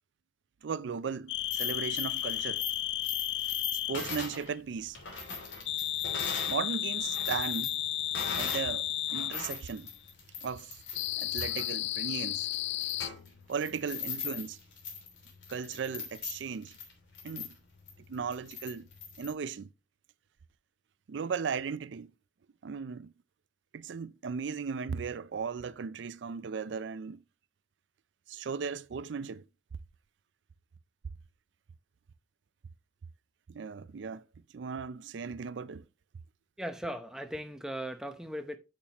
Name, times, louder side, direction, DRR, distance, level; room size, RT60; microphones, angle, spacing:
voice 1, 0.6-2.6 3.9-5.0 6.5-7.7 8.4-9.9 10.4-10.8 11.2-12.5 13.5-14.6 15.5-16.7 17.2-17.5 18.1-18.9 19.2-19.7 21.1-22.1 22.6-23.1 23.7-27.2 28.3-29.4 33.5-34.2 34.5-35.8, right 6 dB, 80° right, 0.4 m, -36 dB
sound 1, 1.3-4.0 5.7-9.4 10.9-13.1, left 14 dB, 75° left, 0.3 m, -33 dB
sound 2, 1.4-6.6 6.9-8.7 9.1-19.3, left 5 dB, 90° left, 3.0 m, -41 dB
voice 2, 36.6-38.6, equal, 5° right, 0.7 m, -38 dB
8.6 x 7.2 x 3.0 m
head